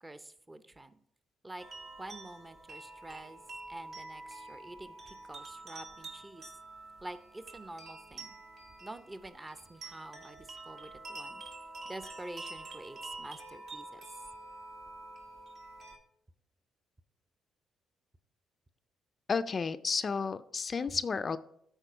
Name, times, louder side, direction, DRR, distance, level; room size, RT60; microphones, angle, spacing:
voice 1, 0.0-0.9 1.4-1.7 2.0-3.4 3.7-6.4 7.0-8.3 8.8-11.4 11.8-14.0, right 1 dB, 20° right, 12 dB, 0.6 m, -47 dB
sound 1, 1.6-16.0, right 2 dB, 65° right, 1.3 m, -47 dB
voice 2, 19.3-21.4, left 5 dB, 40° left, 11 dB, 0.4 m, -32 dB
9.0 x 4.2 x 5.6 m, 0.70 s
cardioid pair, 90°, 0 cm